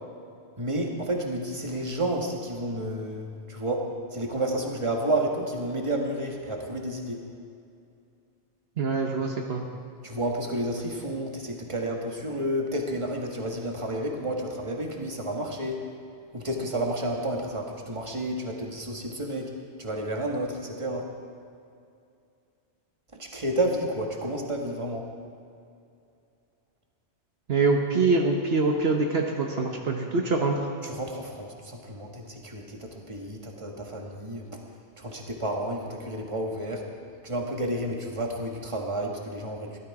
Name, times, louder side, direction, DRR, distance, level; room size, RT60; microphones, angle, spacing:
voice 1, 0.6-7.2 10.0-15.8 16.3-19.5 19.8-21.1 23.1-25.1 30.8-34.6 35.0-36.9 37.2-39.8, right 1 dB, 25° right, 1 dB, 1.6 m, -31 dB
voice 2, 8.8-9.6 27.5-30.5, right 3 dB, 65° right, 1 dB, 1.2 m, -24 dB
16.5 x 12.5 x 4.8 m, 2.5 s
omnidirectional pair, 1.2 m